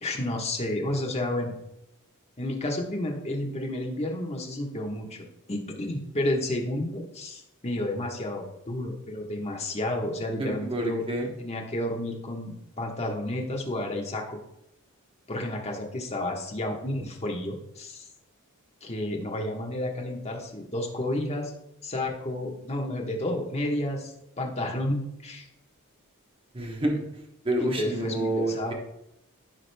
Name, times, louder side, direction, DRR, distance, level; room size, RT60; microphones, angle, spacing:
voice 1, 0.0-1.5 2.4-11.0 11.4-14.4 15.3-18.1 18.8-21.5 21.8-24.1 24.4-25.4 27.6-28.7, left 1 dB, 30° left, 0 dB, 1.2 m, -31 dB
voice 2, 10.4-11.3 26.5-27.0 27.4-28.7, right 1 dB, 25° right, 1 dB, 1.0 m, -28 dB
14.5 x 5.0 x 2.2 m, 0.83 s
head